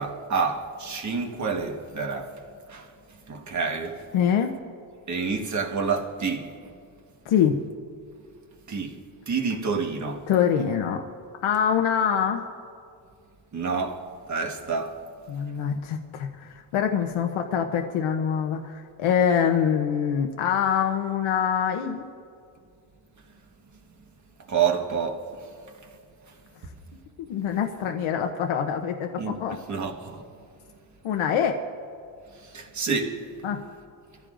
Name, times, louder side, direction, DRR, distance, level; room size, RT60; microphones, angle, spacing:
voice 1, 0.0-2.3 2.7-2.9 3.3-4.0 5.1-6.7 8.7-9.0 9.3-10.3 13.5-15.0 24.5-25.5 29.2-30.2 32.4-33.2, right 5 dB, 35° right, 1.4 m, -28 dB
voice 2, 4.1-4.6 7.3-7.6 10.3-11.0 11.4-12.5 15.3-22.0 27.3-29.6 31.0-31.6 33.4-33.6, left 8 dB, 85° left, 0.9 m, -24 dB
25.5 x 15.0 x 2.6 m
cardioid pair, 130°, 47 cm